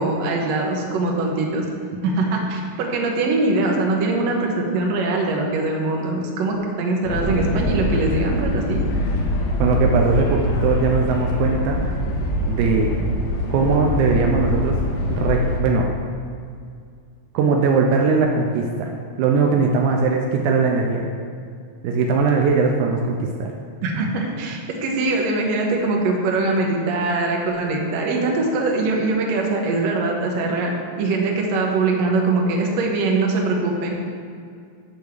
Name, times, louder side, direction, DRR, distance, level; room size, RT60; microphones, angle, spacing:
voice 1, 0.0-1.7 2.0-8.8 23.8-34.0, right 2 dB, 70° right, 0 dB, 1.6 m, -22 dB
sound 1, 7.0-15.6, left 1 dB, 80° left, 1.4 m, -24 dB
voice 2, 9.6-11.8 12.5-12.9 13.5-14.7 15.1-15.9 17.3-18.9 19.2-21.0 21.8-23.5, right 4 dB, 90° right, 1 dB, 1.7 m, -20 dB
8.7 x 3.5 x 6.5 m, 2.3 s
omnidirectional pair, 4.1 m